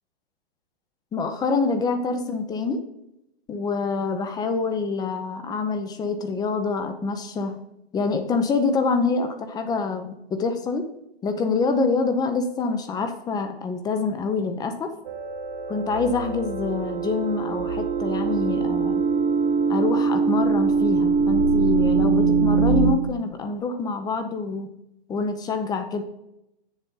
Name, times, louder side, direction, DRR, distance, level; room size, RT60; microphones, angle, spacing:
voice 1, 1.1-2.8 3.5-7.5 7.9-10.9 11.2-14.9 15.7-19.0 19.7-24.7 25.1-26.0, left 4 dB, 10° left, 8 dB, 0.7 m, -26 dB
sound 1, 15.1-22.9, right 4 dB, 50° right, 1.5 m, -22 dB
7.8 x 7.2 x 3.8 m, 0.83 s
hypercardioid pair, 135°, 31 cm